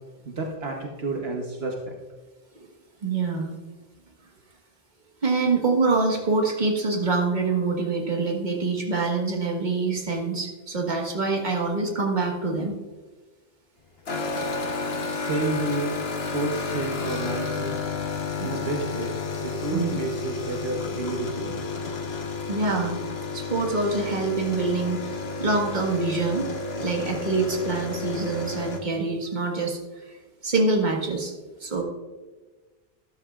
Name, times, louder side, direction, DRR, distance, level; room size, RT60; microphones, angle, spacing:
voice 1, 0.2-1.9 15.1-16.0 16.3-17.7 18.4-21.6, right 2 dB, 75° right, 1 dB, 1.2 m, -30 dB
voice 2, 3.0-3.6 5.2-12.8 19.7-19.9 22.5-23.0 23.3-26.5 26.8-30.2 30.4-31.3 31.6-31.8, right 3 dB, 45° right, 0 dB, 1.6 m, -25 dB
sound 1, 14.1-28.8, left 4 dB, 75° left, 1.3 m, -31 dB
13.0 x 12.0 x 2.4 m, 1.3 s
omnidirectional pair, 1.0 m